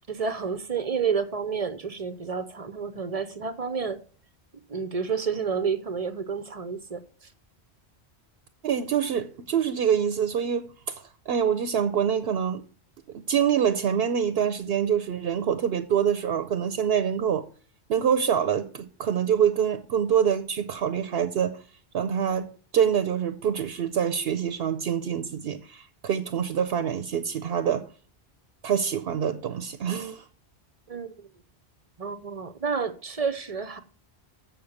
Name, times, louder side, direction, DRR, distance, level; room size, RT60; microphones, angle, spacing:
voice 1, 0.1-4.0 4.7-7.0 30.9-31.3 32.0-33.8, right 5 dB, 40° right, 0.7 m, -30 dB
voice 2, 8.6-12.6 13.1-17.5 17.9-21.6 21.9-27.9 28.6-30.2, right 8 dB, 65° right, 0.9 m, -25 dB
7.1 x 6.6 x 7.1 m
omnidirectional pair, 1.1 m